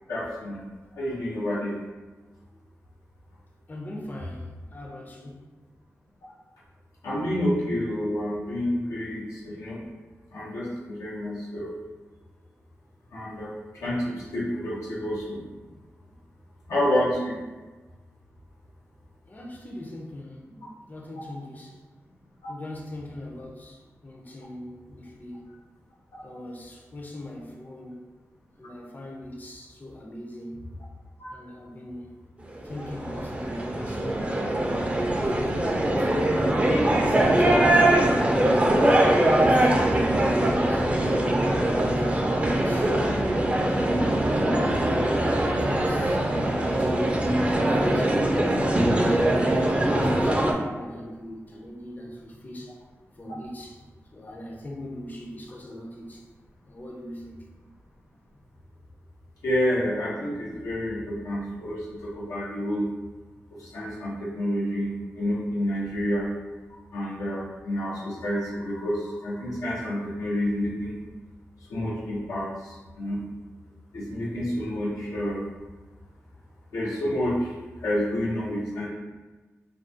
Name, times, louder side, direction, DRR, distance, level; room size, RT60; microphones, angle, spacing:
voice 1, 0.1-0.7 0.9-1.8 7.0-9.8 10.3-11.7 13.1-15.4 16.7-17.4 22.4-22.5 31.2-31.4 59.4-62.9 63.5-66.3 66.9-71.0 71.7-73.2 73.9-75.4 76.7-77.5 77.8-78.9, equal, 90° left, -6 dB, 0.6 m, -29 dB
voice 2, 3.7-5.5 19.3-21.8 22.5-25.5 26.2-28.0 28.6-30.8 31.3-32.1 32.6-34.3 34.8-36.1 36.9-38.6 39.3-40.9 41.6-43.0 43.5-44.4 45.2-48.1 48.7-52.8 53.2-53.8 54.1-56.2 56.7-57.5, left 1 dB, 30° left, -1 dB, 0.5 m, -40 dB
sound 1, 32.6-50.5, right 1 dB, 25° right, 0.4 m, -22 dB
2.3 x 2.3 x 2.5 m, 1.2 s
cardioid pair, 45°, 6 cm